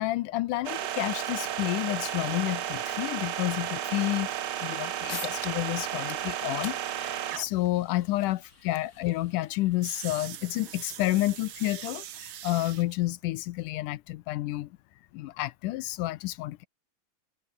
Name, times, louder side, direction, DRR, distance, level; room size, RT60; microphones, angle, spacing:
voice 1, 0.0-4.3 4.6-14.7 15.1-16.7, left 17 dB, 75° left, 2.2 m, -30 dB
sound 1, 0.6-7.7 9.8-12.8, right 11 dB, 70° right, 1.2 m, -34 dB
sound 2, 5.1-5.7 6.0-11.1, left 4 dB, 25° left, 1.9 m, -46 dB
omnidirectional pair, 3.9 m